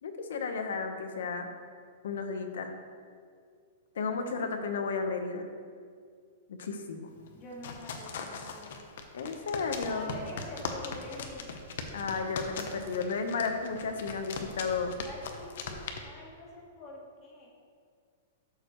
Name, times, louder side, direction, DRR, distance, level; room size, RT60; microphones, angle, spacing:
voice 1, 0.0-1.5 2.0-2.7 3.9-5.5 6.5-7.1 9.1-10.2 11.9-14.9, left 4 dB, 75° left, 6 dB, 1.1 m, -33 dB
sound 1, 7.2-16.0, left 5 dB, 55° left, 0.9 m, -40 dB
voice 2, 7.3-8.8 9.8-11.5 15.0-17.5, left 2 dB, 20° left, -3 dB, 1.7 m, -46 dB
13.0 x 6.7 x 3.1 m, 2.1 s
supercardioid pair, 175°, 0 cm